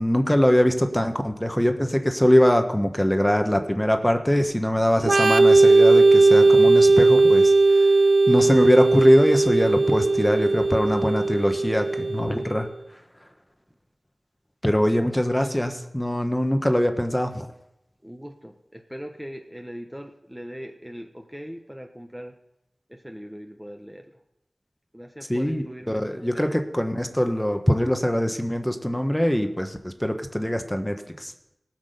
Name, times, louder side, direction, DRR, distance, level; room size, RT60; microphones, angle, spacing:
voice 1, 0.0-7.9 8.3-12.7 14.6-17.5 25.3-31.3, equal, 10° left, 6 dB, 1.3 m, -22 dB
Organ, 5.0-12.5, right 3 dB, 75° right, 0.5 m, -17 dB
voice 2, 18.0-22.4 22.9-24.2 24.9-26.6, equal, 10° right, 3 dB, 1.0 m, -40 dB
18.0 x 6.1 x 6.8 m, 0.87 s
wide cardioid pair, 45°, 0 cm